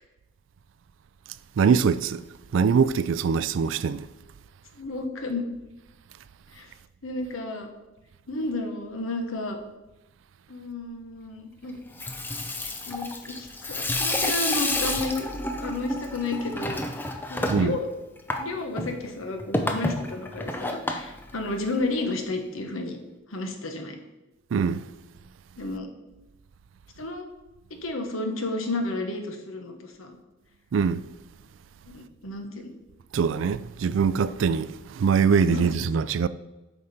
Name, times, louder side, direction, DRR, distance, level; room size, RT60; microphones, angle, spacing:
voice 1, 1.6-2.2 2.5-4.1 17.5-17.8 24.5-24.8 30.7-31.0 33.1-36.3, right 6 dB, 70° right, 0.3 m, -23 dB
voice 2, 4.8-5.4 6.5-6.7 7.0-7.7 8.3-9.6 10.5-11.8 12.9-15.3 15.6-16.8 17.3-17.9 18.4-23.0 23.3-24.0 25.6-25.9 27.0-27.2 27.8-30.2 31.9-32.7 35.5-35.8, left 2 dB, 85° left, 1.1 m, -32 dB
Water tap faucet / Sink (filling or washing), 11.8-22.0, left 1 dB, 10° left, 0.5 m, -30 dB
7.9 x 5.1 x 4.2 m
head